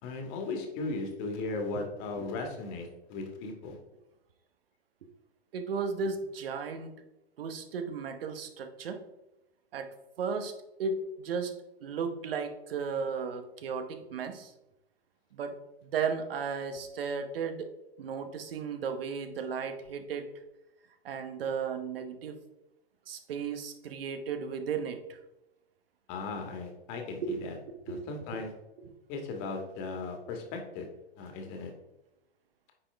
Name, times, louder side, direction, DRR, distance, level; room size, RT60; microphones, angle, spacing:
voice 1, 0.0-3.8 26.1-27.6 27.9-28.5 29.1-30.9 31.2-31.7, left 3 dB, 45° left, 3 dB, 1.7 m, -37 dB
voice 2, 5.5-6.9 7.4-9.0 9.7-9.9 10.2-10.5 10.8-11.5 11.8-14.5 15.3-15.6 15.8-17.7 18.0-20.3 21.0-22.4 23.1-25.0 27.2-27.4 27.7-28.0, right 5 dB, 70° right, 7 dB, 1.1 m, -34 dB
9.3 x 4.1 x 3.4 m, 0.94 s
hypercardioid pair, 110°, 30 cm